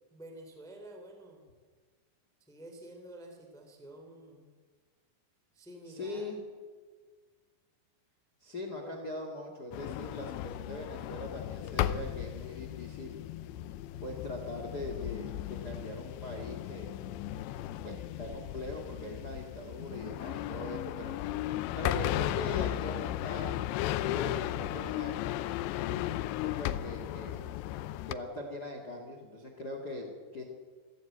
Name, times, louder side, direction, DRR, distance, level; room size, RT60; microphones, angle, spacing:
voice 1, 0.1-1.4 2.5-4.5 5.5-6.3 8.8-9.0, right 1 dB, ahead, 4 dB, 2.6 m, -49 dB
voice 2, 5.9-6.4 8.4-13.2 14.0-16.9 17.8-21.1 21.8-25.1 26.4-27.4 28.1-30.4, left 1 dB, 30° left, 3 dB, 2.1 m, -41 dB
sound 1, 9.7-28.1, left 13 dB, 85° left, 3.0 m, -35 dB
24.0 x 15.5 x 8.1 m, 1.5 s
omnidirectional pair, 4.9 m